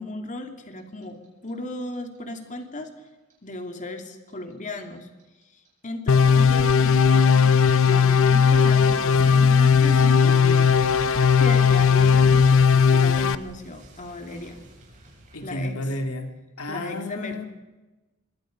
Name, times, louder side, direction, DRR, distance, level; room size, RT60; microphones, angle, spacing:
voice 1, 0.0-2.9 3.4-5.1 5.4-10.3 11.4-14.6 15.4-15.8 16.7-17.4, left 2 dB, 35° left, 4 dB, 2.6 m, -35 dB
Clock, 0.8-3.8 4.0-7.0 7.3-16.2, right 1 dB, 35° right, 7.4 m, -44 dB
sound 1, 6.1-13.3, left 6 dB, 65° left, 0.8 m, -17 dB
voice 2, 10.2-10.7 15.3-17.4, left 1 dB, 85° left, 5 dB, 2.6 m, -32 dB
25.5 x 23.0 x 5.3 m, 1.1 s
head